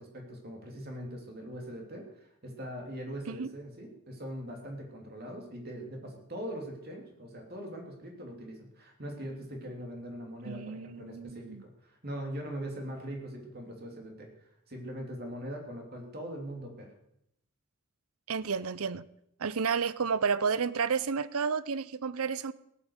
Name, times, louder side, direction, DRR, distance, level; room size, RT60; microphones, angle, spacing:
voice 1, 0.0-14.3 14.7-16.9, equal, 45° right, 3.0 m, -41 dB
voice 2, 10.4-11.6 18.3-19.0 19.4-22.5, right 5 dB, 85° right, 0.6 m, -31 dB
17.5 x 8.8 x 6.5 m
head